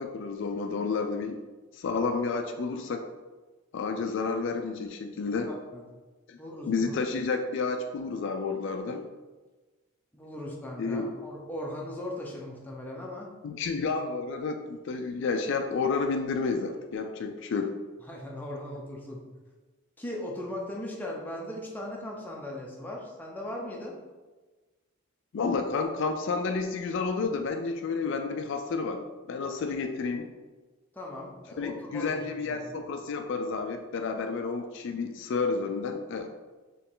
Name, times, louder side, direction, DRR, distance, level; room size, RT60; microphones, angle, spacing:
voice 1, 0.0-1.4 1.7-3.0 3.7-5.5 6.3-6.4 6.7-9.0 10.8-11.1 13.4-17.7 25.3-29.0 29.3-30.3 31.6-36.3, left 4 dB, 60° left, 5 dB, 0.3 m, -30 dB
voice 2, 5.5-5.8 6.4-7.0 10.1-13.3 18.0-19.2 20.0-24.0 30.9-32.6, left 1 dB, 10° left, -2 dB, 0.7 m, -38 dB
4.3 x 3.1 x 3.8 m, 1.3 s
head